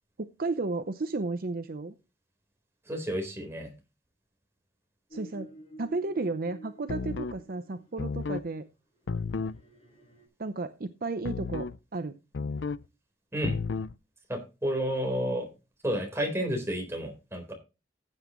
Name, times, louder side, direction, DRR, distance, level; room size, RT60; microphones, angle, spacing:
voice 1, 0.2-1.9 5.1-5.5 5.8-8.7 10.4-12.2, right 3 dB, 55° right, 10 dB, 0.7 m, -33 dB
voice 2, 2.9-3.7 13.3-13.6 14.3-15.5 15.8-17.5, equal, 15° right, 2 dB, 4.0 m, -31 dB
sound 1, 5.1-8.0 9.0-10.3, right 1 dB, 35° left, 4.5 m, -49 dB
sound 2, 6.9-7.4 8.0-8.5 9.1-9.6 11.2-11.8 12.3-12.9 13.4-13.9, left 4 dB, 85° left, 0.5 m, -32 dB
15.0 x 8.2 x 3.0 m, 0.29 s
head